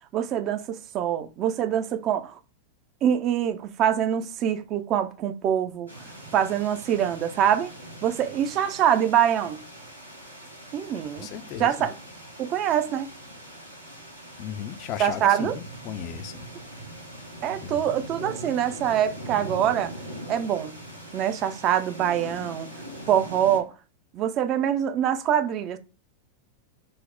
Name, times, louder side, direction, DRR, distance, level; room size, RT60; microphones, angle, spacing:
voice 1, 0.1-2.4 3.0-7.7 8.0-9.6 10.7-11.3 11.6-11.9 12.4-13.1 15.0-15.6 17.4-19.9 20.3-20.8 21.1-22.7 23.1-23.7 24.1-25.8, right 10 dB, 35° right, 0.4 m, -24 dB
sound 1, 5.9-23.6, right 1 dB, 85° right, 1.0 m, -41 dB
voice 2, 11.1-11.9 14.4-16.5 17.6-18.1, left 9 dB, 40° left, 0.4 m, -36 dB
4.0 x 2.0 x 3.7 m
figure-of-eight pair, 90°, 0 cm